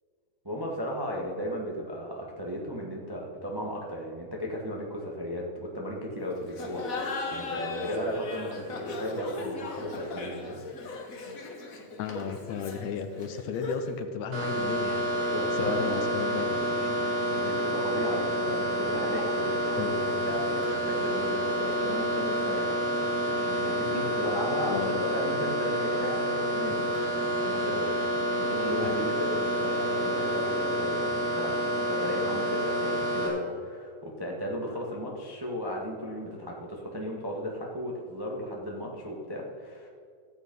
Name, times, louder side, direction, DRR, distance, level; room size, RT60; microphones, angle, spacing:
voice 1, 0.4-6.8 7.3-10.6 15.1-16.0 17.3-23.1 23.4-31.6 31.9-39.9, equal, 30° right, -2 dB, 0.4 m, -35 dB
Laughter, 6.5-14.0, left 2 dB, 50° left, 1.0 m, -36 dB
voice 2, 12.0-15.1 15.5-17.5 19.8-20.2 24.7-25.1 28.5-29.0, left 7 dB, 75° left, 8 dB, 2.0 m, -35 dB
sound 1, 14.3-33.3, equal, 60° right, 3.6 m, -28 dB
14.0 x 8.1 x 5.4 m, 2.2 s
omnidirectional pair, 3.4 m